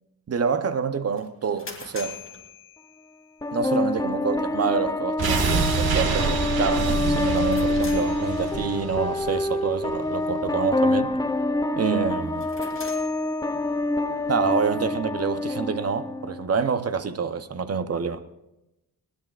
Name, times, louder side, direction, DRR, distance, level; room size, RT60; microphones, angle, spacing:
voice 1, 0.3-2.2 3.5-11.1 11.8-12.5 14.3-18.2, right 6 dB, 40° right, 0.8 m, -27 dB
sound 1, 1.2-3.4 7.2-8.9 12.2-14.0, left 5 dB, 35° left, 2.6 m, -43 dB
sound 2, 3.4-16.4, left 2 dB, 10° left, 0.5 m, -26 dB
sound 3, 5.2-10.1 10.4-10.5, right 4 dB, 75° right, 1.9 m, -27 dB
20.0 x 20.0 x 2.4 m
wide cardioid pair, 140°, 37 cm